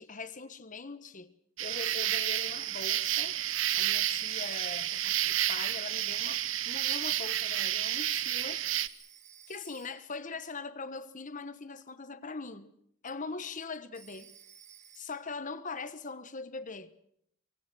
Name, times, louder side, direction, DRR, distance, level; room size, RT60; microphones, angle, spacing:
voice 1, 0.0-1.3 1.6-3.4 3.7-8.6 9.5-12.7 13.0-14.3 14.9-17.0, left 4 dB, 40° left, 1.3 m, -41 dB
sound 1, 1.6-8.9, right 12 dB, 65° right, 0.9 m, -30 dB
Telephone, 4.0-5.4 8.8-10.2 13.9-15.4, right 9 dB, 35° right, 1.7 m, -56 dB
24.5 x 23.5 x 6.3 m
head